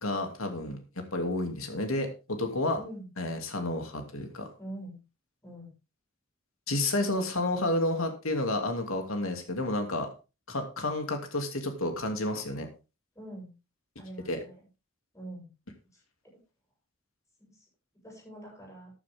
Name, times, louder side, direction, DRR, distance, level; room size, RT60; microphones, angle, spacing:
voice 1, 0.0-2.8 3.2-4.5 6.7-10.1 10.5-12.7 14.3-14.4, left 2 dB, 85° left, 5 dB, 2.7 m, -30 dB
voice 2, 2.7-3.1 4.6-5.0 5.4-5.7 7.1-7.3 13.1-13.5 14.0-14.6 15.1-15.5 16.3-16.4 17.4-17.6 18.0-18.9, right 1 dB, 15° left, -2 dB, 7.7 m, -44 dB
14.0 x 9.8 x 3.6 m, 0.29 s
head